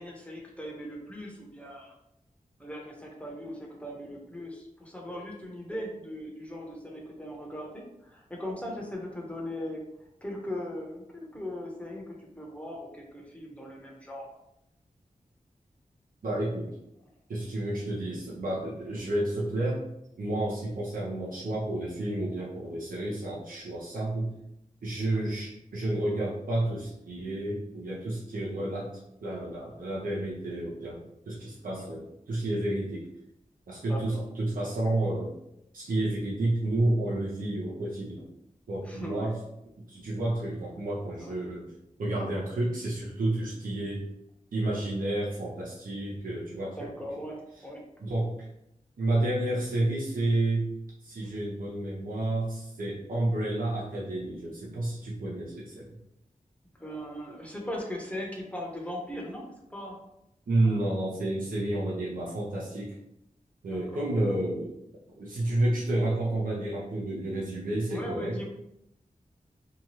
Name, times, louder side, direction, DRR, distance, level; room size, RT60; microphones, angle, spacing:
voice 1, 0.0-1.9 2.6-9.8 10.2-14.3 31.8-31.9 33.9-34.2 38.8-39.3 41.2-41.3 46.7-47.8 56.7-60.0 60.6-60.7 63.7-64.1 67.9-68.5, left 1 dB, 10° left, -1 dB, 0.8 m, -39 dB
voice 2, 16.2-16.7 17.3-19.8 20.2-24.3 24.8-28.9 29.2-33.1 33.7-35.3 35.7-38.3 38.7-39.4 39.9-41.7 42.0-44.0 44.5-46.8 48.0-48.5 49.0-50.7 51.0-55.8 60.5-63.0 63.6-64.7 65.2-68.5, right 1 dB, 85° right, -6 dB, 0.6 m, -30 dB
2.8 x 2.3 x 2.9 m, 0.82 s
wide cardioid pair, 70°, 14 cm